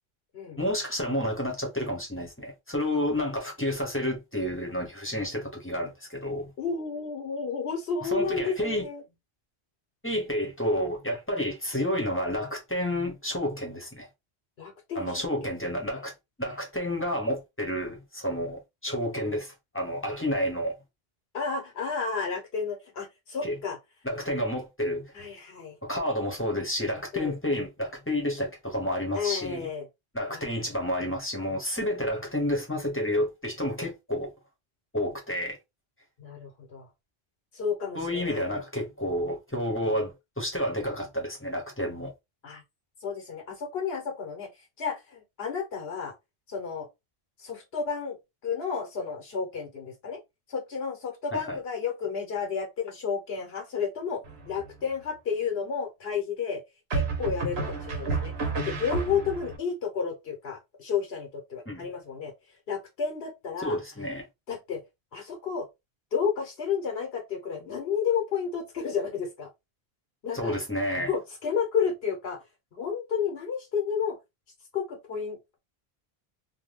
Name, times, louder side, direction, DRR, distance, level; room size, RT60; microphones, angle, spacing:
voice 1, 0.6-6.5 8.0-8.8 10.0-14.1 15.0-16.1 16.4-20.7 23.4-23.6 24.0-25.1 25.8-29.7 30.1-34.3 34.9-35.6 37.9-42.1 51.3-51.6 61.7-61.9 63.6-64.2 70.3-71.1, left 1 dB, 15° left, 0.7 m, -30 dB
voice 2, 6.6-9.0 11.3-11.4 14.6-15.5 21.3-23.8 25.1-25.7 27.1-27.4 29.1-29.9 30.3-30.5 36.2-36.9 37.5-38.5 39.9-40.0 42.4-42.6 43.0-44.5 44.8-46.1 46.5-46.9 47.4-48.2 48.4-50.2 50.5-56.6 56.9-62.3 62.7-63.8 64.5-64.8 65.1-65.7 66.1-69.5 70.2-70.6 71.0-72.4 72.7-74.2 74.7-75.6, left 6 dB, 80° left, 1.1 m, -31 dB
sound 1, 54.2-54.8 56.9-59.6, right 4 dB, 85° right, 1.1 m, -31 dB
2.6 x 2.2 x 3.2 m
omnidirectional pair, 1.0 m